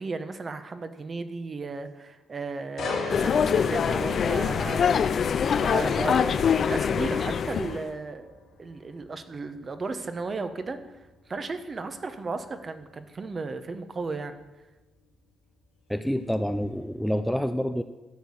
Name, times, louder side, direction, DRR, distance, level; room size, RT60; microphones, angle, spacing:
voice 1, 0.0-4.9 5.3-8.3 8.6-10.8 11.3-14.4, right 3 dB, 35° right, 9 dB, 1.0 m, -34 dB
sound 1, 2.8-16.6 17.0-17.3, left 4 dB, 70° left, 2.6 m, -42 dB
sound 2, 3.1-7.8, left 7 dB, 55° left, 0.5 m, -24 dB
voice 2, 15.9-17.8, equal, ahead, 8 dB, 0.5 m, -27 dB
12.5 x 4.7 x 8.4 m, 1.1 s
cardioid pair, 90°, 0 cm